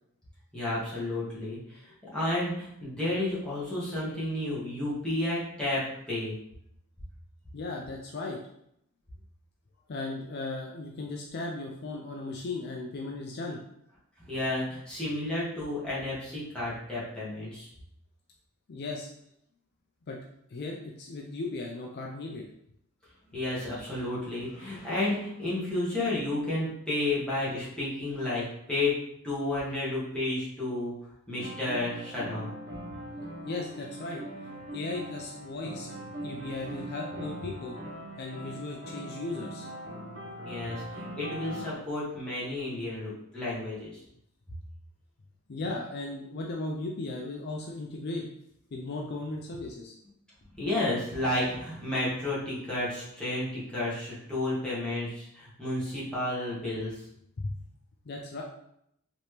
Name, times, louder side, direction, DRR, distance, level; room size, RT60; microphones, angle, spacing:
voice 1, 0.5-6.3 14.2-17.7 23.3-29.0 29.2-30.9 31.3-32.5 36.3-36.9 40.4-44.0 50.6-57.0, left 1 dB, 5° left, -9 dB, 1.5 m, -32 dB
voice 2, 7.5-8.4 9.9-13.6 18.7-19.1 20.1-20.2 20.5-22.5 33.5-34.3 34.7-35.9 36.2-37.8 38.2-39.7 45.5-48.2 48.7-49.9 57.4-57.6 58.1-58.4, left 2 dB, 45° left, 0 dB, 0.4 m, -36 dB
sound 1, 31.4-41.7, equal, 55° right, 1.3 m, -41 dB
4.3 x 3.0 x 3.3 m, 0.76 s
head